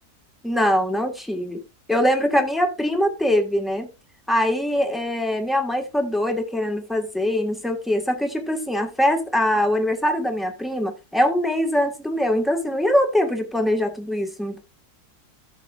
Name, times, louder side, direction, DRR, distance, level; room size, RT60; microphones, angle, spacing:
voice 1, 0.4-1.6 1.9-3.9 4.3-14.6, equal, ahead, 1.6 m, -22 dB
14.0 x 7.0 x 2.6 m
omnidirectional pair, 1.7 m